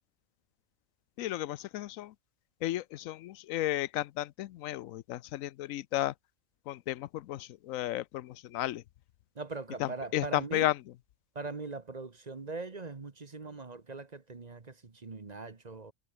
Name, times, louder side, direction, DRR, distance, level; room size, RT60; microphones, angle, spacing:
voice 1, 1.2-2.1 2.6-6.1 6.7-8.8 9.8-10.7, left 14 dB, 85° left, 1.0 m, -33 dB
voice 2, 9.3-10.7 11.3-15.9, right 3 dB, 35° right, 1.2 m, -41 dB
omnidirectional pair, 1.4 m